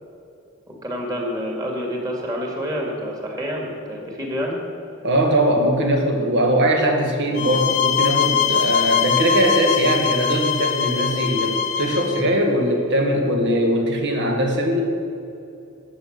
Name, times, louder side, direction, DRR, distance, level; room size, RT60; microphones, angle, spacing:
voice 1, 0.7-4.6, equal, 20° right, -1 dB, 2.4 m, -28 dB
voice 2, 5.0-14.8, right 1 dB, 60° right, 2 dB, 1.9 m, -20 dB
sound 1, 7.4-12.3, left 8 dB, 35° left, 0.7 m, -22 dB
12.5 x 8.4 x 6.8 m, 2.8 s
head